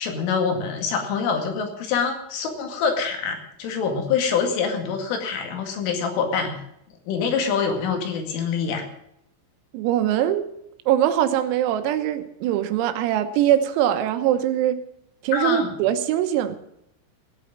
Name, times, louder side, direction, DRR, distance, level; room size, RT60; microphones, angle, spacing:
voice 1, 0.0-6.6 7.1-8.9 15.3-15.7, left 6 dB, 75° left, 4 dB, 4.7 m, -25 dB
voice 2, 9.7-10.5 10.9-14.8 15.2-16.6, right 11 dB, 90° right, 9 dB, 3.9 m, -22 dB
17.0 x 8.7 x 7.4 m, 0.77 s
omnidirectional pair, 5.9 m